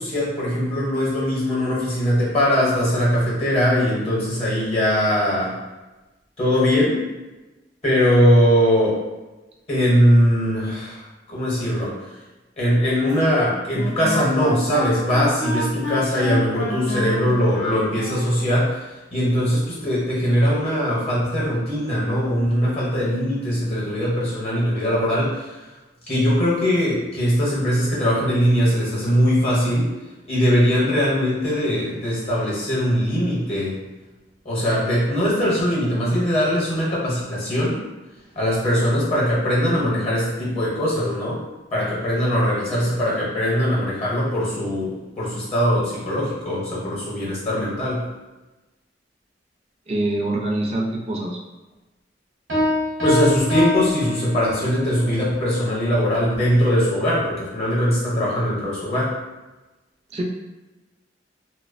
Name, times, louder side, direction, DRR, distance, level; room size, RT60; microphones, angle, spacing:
voice 1, 0.0-5.5 6.4-7.0 7.8-9.0 9.7-11.0 11.3-12.1 12.6-25.6 26.1-29.9 30.3-33.8 34.4-37.8 38.4-41.4 41.7-48.0 53.0-59.2, equal, 35° left, -6 dB, 0.8 m, -21 dB
Wind instrument woodwind instrument, 13.0-18.4, left 1 dB, 70° left, 0.5 m, -30 dB
voice 2, 49.9-51.4 60.1-60.2, right 1 dB, 35° right, 0 dB, 0.4 m, -24 dB
Piano, 52.5-54.9, left 1 dB, 85° right, 0.9 m, -23 dB
2.5 x 2.0 x 2.4 m, 1.1 s
head